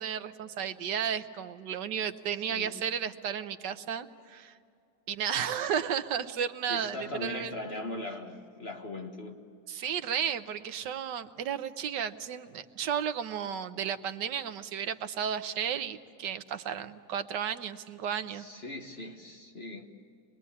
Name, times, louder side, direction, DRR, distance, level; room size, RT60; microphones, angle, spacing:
voice 1, 0.0-4.6 5.1-7.5 9.7-18.5, right 8 dB, 80° right, 1.5 m, -33 dB
voice 2, 2.5-2.8 6.7-9.4 18.3-19.9, left 2 dB, 35° left, 1.5 m, -39 dB
25.0 x 21.0 x 8.5 m
omnidirectional pair, 1.9 m